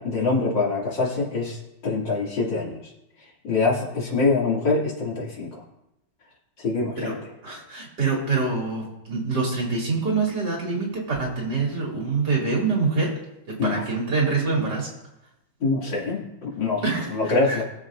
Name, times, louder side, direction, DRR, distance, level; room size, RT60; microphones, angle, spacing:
voice 1, 0.0-1.6 1.8-2.8 3.4-5.5 6.6-7.2 13.6-13.8 15.6-16.8 17.1-17.6, left 3 dB, 65° left, -4 dB, 3.1 m, -24 dB
voice 2, 7.4-13.1 13.5-14.9 16.8-17.6, right 4 dB, 55° right, -3 dB, 3.1 m, -25 dB
21.5 x 7.3 x 2.5 m, 0.88 s
omnidirectional pair, 2.2 m